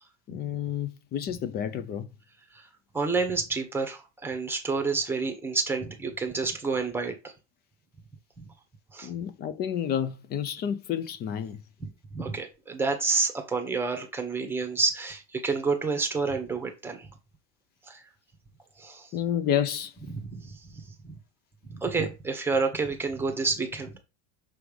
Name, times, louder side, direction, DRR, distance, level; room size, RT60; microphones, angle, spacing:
voice 1, 0.3-2.1 9.0-11.6 19.1-19.9, left 9 dB, 30° left, 0.4 m, -30 dB
voice 2, 2.9-7.3 8.4-8.5 8.9-9.1 11.8-17.1 17.9-18.0 18.8-19.1 20.1-20.8 21.7-24.0, right 4 dB, 5° right, 1.0 m, -29 dB
6.2 x 3.2 x 5.0 m
cardioid pair, 160°, 35 cm